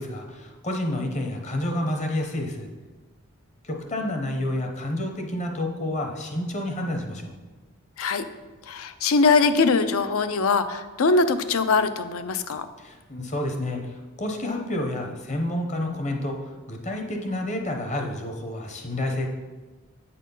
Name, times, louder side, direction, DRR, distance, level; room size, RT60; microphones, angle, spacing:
voice 1, 0.0-2.7 3.6-7.3 12.8-19.3, left 1 dB, 30° left, 3 dB, 0.8 m, -29 dB
voice 2, 8.7-12.7, left 4 dB, 75° left, 11 dB, 0.5 m, -22 dB
8.1 x 4.2 x 5.4 m, 1.3 s
head